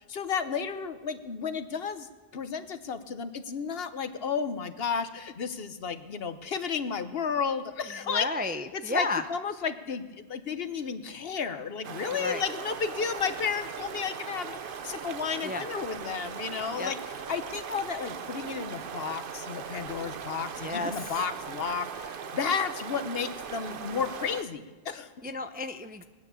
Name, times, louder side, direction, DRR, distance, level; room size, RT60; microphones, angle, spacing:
voice 1, 0.0-8.3 8.7-10.0 10.3-17.0 17.3-22.1 22.3-25.1, left 6 dB, 65° left, 10 dB, 1.1 m, -32 dB
voice 2, 8.0-9.2 12.1-12.4 15.4-15.7 16.8-16.9 20.6-21.2 25.2-26.0, left 2 dB, 15° right, 8 dB, 0.4 m, -32 dB
sound 1, 11.8-24.4, right 6 dB, 55° right, 0.9 m, -39 dB
20.0 x 9.6 x 7.0 m, 1.3 s
omnidirectional pair, 1.1 m